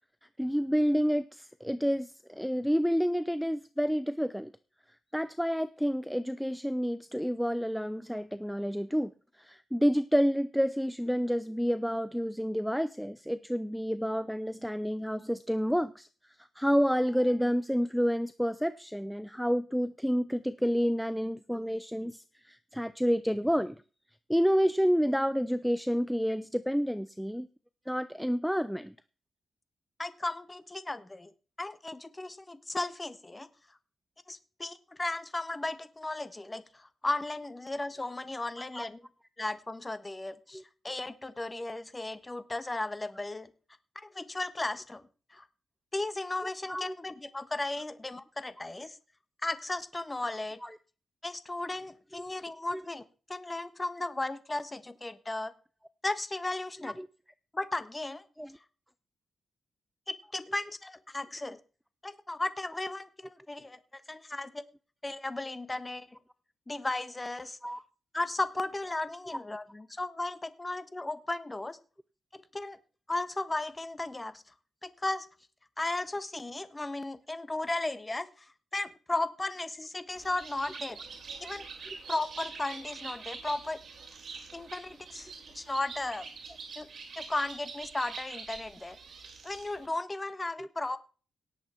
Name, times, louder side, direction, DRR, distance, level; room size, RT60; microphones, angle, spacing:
voice 1, 0.4-4.5 5.1-9.1 9.4-16.1 16.6-23.8 24.3-27.5 27.9-28.9 38.6-38.9 40.5-40.6 46.4-47.0 50.6-50.8 52.7-52.9 56.8-57.1 58.4-58.6 67.6-67.8 81.9-82.0 90.6-90.7, equal, ahead, 13 dB, 0.5 m, -29 dB
voice 2, 30.0-31.3 31.6-33.5 34.3-39.0 39.4-43.5 43.9-45.4 45.9-49.0 49.4-50.6 51.2-53.0 53.3-55.5 56.0-57.0 57.5-58.2 60.1-61.6 62.0-64.6 65.0-66.2 66.7-67.6 68.1-71.8 72.3-72.8 73.1-74.5 74.8-75.3 75.8-81.0 81.4-81.6 82.1-83.8 84.5-86.3 86.8-86.9 87.2-89.0 89.4-91.0, left 2 dB, 20° left, 12 dB, 1.3 m, -35 dB
Bird, 80.2-89.9, right 5 dB, 60° right, 2.9 m, -45 dB
17.5 x 8.0 x 4.5 m, 0.37 s
cardioid pair, 110°, 0 cm